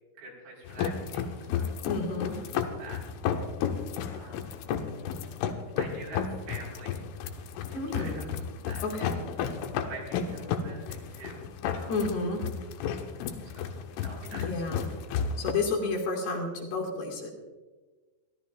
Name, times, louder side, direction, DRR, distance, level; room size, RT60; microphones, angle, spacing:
voice 1, 0.2-1.7 2.4-2.5 2.8-3.0 4.1-4.6 5.8-7.0 7.7-8.3 8.7-9.1 9.8-11.9 13.4-13.7 14.0-14.5, right 3 dB, 70° right, -3 dB, 7.4 m, -46 dB
sound 1, 0.7-15.5, left 7 dB, 85° left, 3.5 m, -33 dB
voice 2, 1.9-2.4 7.7-8.2 8.8-9.2 11.9-12.4 14.3-14.8 15.4-17.3, left 3 dB, 60° left, 0 dB, 4.2 m, -31 dB
24.5 x 13.5 x 2.6 m, 1.3 s
omnidirectional pair, 5.6 m